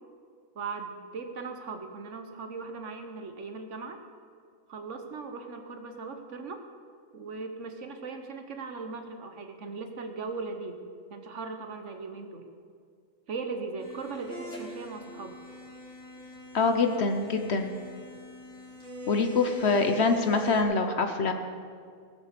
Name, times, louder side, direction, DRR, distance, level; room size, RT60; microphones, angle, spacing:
voice 1, 0.5-4.0 4.7-6.6 7.1-10.8 11.1-12.5 13.3-15.4, right 4 dB, 60° right, 6 dB, 1.3 m, -38 dB
sound 1, 13.8-20.6, equal, 5° left, 3.9 m, -44 dB
voice 2, 16.5-17.7 19.1-21.3, left 4 dB, 55° left, 6 dB, 1.2 m, -25 dB
18.5 x 7.2 x 6.8 m, 2.2 s
omnidirectional pair, 1.4 m